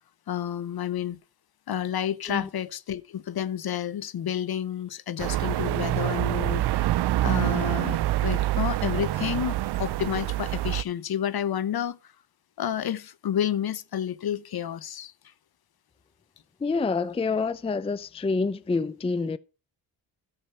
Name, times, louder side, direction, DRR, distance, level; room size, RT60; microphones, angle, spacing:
voice 1, 0.3-1.2 1.7-12.0 12.6-15.1, left 10 dB, 55° left, 0.8 m, -30 dB
sound 1, 5.2-10.8, right 15 dB, 65° right, 0.5 m, -26 dB
voice 2, 16.6-19.4, left 4 dB, 15° left, 0.5 m, -27 dB
12.5 x 6.1 x 5.6 m
cardioid pair, 60°, 44 cm